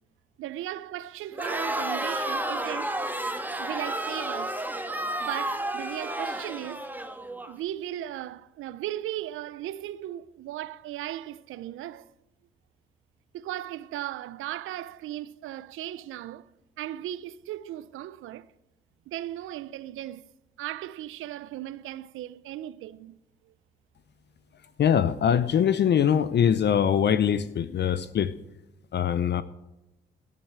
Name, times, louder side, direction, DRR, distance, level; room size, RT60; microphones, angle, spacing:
voice 1, 0.4-3.0 3.6-4.6 5.2-6.9 7.5-12.1 13.3-16.5 16.8-18.5 19.1-20.3 20.6-23.2, right 13 dB, 75° right, 0.6 m, -37 dB
Crowd, 1.3-7.5, right 1 dB, 10° right, 1.6 m, -31 dB
voice 2, 24.8-28.3 28.9-29.4, left 8 dB, 55° left, 0.7 m, -23 dB
11.0 x 11.0 x 8.0 m
supercardioid pair, 50°, 21 cm